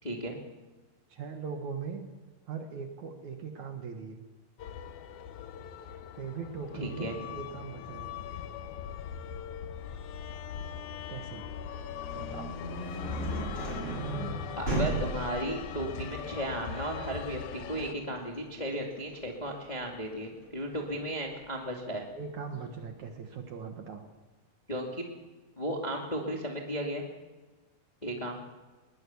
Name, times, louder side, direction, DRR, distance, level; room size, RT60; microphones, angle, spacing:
voice 1, 0.0-0.4 6.8-7.2 14.6-22.0 24.7-25.0 25.6-27.0 28.0-28.4, equal, 15° left, 0 dB, 1.5 m, -35 dB
voice 2, 1.1-2.0 2.5-4.2 6.1-8.1 11.1-11.4 12.1-12.5 22.1-24.1, right 6 dB, 60° right, 4 dB, 2.4 m, -40 dB
sound 1, 4.6-17.9, left 8 dB, 75° left, 1.7 m, -41 dB
sound 2, 11.8-21.6, right 2 dB, 15° right, 6.8 m, -37 dB
21.0 x 18.5 x 7.1 m, 1.3 s
omnidirectional pair, 4.6 m